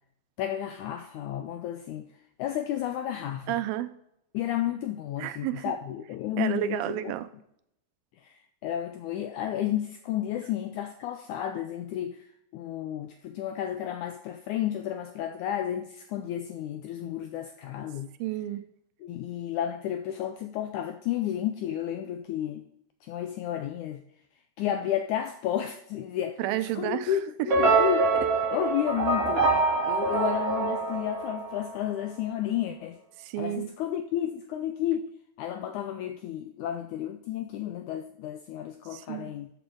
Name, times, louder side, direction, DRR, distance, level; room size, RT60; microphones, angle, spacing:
voice 1, 0.4-2.1 2.4-3.6 4.3-7.1 8.2-12.3 12.5-18.1 19.0-22.6 23.0-24.0 24.6-26.4 26.8-28.1 28.5-29.6 29.8-33.0 33.4-39.5, left 11 dB, 80° left, 1.7 m, -32 dB
voice 2, 3.5-3.9 5.2-5.7 6.4-7.3 18.2-18.6 26.4-27.2 33.2-33.7 38.9-39.3, right 13 dB, 85° right, 2.4 m, -31 dB
sound 1, 27.5-31.8, right 3 dB, 45° right, 3.1 m, -25 dB
13.0 x 7.0 x 3.7 m
omnidirectional pair, 4.1 m